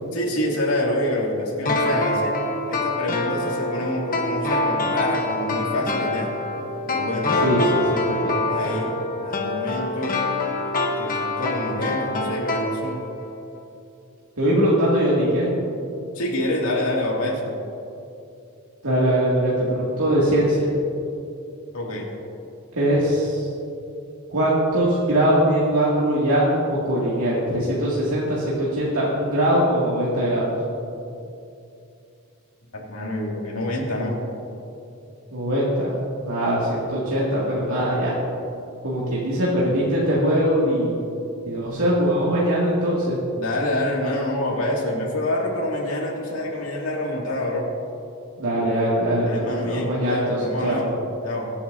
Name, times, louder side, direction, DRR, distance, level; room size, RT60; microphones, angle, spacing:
voice 1, 0.1-2.4 2.7-6.3 6.9-7.3 8.5-10.1 11.0-13.0 16.1-17.6 21.7-22.1 32.7-34.2 43.3-47.7 49.2-51.0 51.2-51.5, left 1 dB, 70° left, -2 dB, 2.4 m, -27 dB
sound 1, 1.6-13.3 13.6-13.7, left 2 dB, 40° left, 1.1 m, -25 dB
voice 2, 7.4-8.3 14.4-15.5 18.8-20.8 22.8-23.5 24.3-30.5 35.3-35.9 36.2-38.2 38.8-40.9 41.5-43.2 48.4-50.8, equal, 80° right, -8 dB, 2.3 m, -21 dB
23.5 x 8.5 x 2.7 m, 2.6 s
head